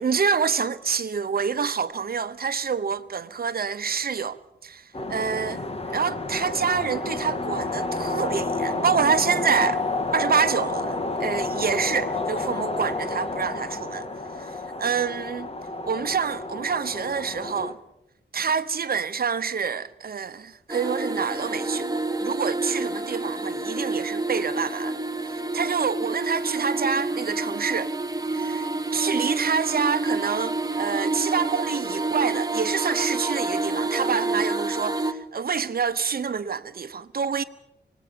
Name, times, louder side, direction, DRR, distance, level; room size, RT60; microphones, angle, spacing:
voice 1, 0.0-9.8 10.1-14.1 14.4-15.5 15.8-17.8 18.3-25.0 25.5-27.9 28.3-37.4, right 6 dB, 55° right, 1.0 m, -27 dB
sound 1, 4.9-17.7, left 2 dB, 35° left, 1.6 m, -30 dB
sound 2, 20.7-35.1, right 2 dB, 20° right, 1.2 m, -28 dB
25.5 x 19.0 x 7.0 m
wide cardioid pair, 130°, 18 cm